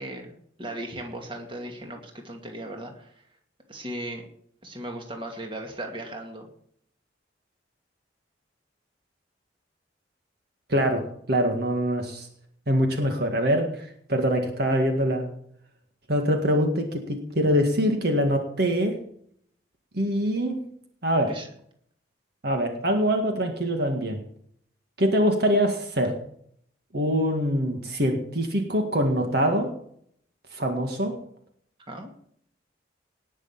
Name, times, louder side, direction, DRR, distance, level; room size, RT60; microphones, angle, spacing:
voice 1, 0.0-3.2 3.7-4.2 4.6-6.5 21.3-21.5 31.9-32.1, right 1 dB, 30° right, 3 dB, 2.4 m, -37 dB
voice 2, 10.7-12.3 12.7-15.3 16.1-19.0 19.9-20.6 21.0-21.4 22.4-24.2 25.0-26.2 26.9-29.7 30.5-31.2, equal, 60° right, 4 dB, 1.9 m, -24 dB
19.0 x 6.5 x 7.3 m, 0.66 s
head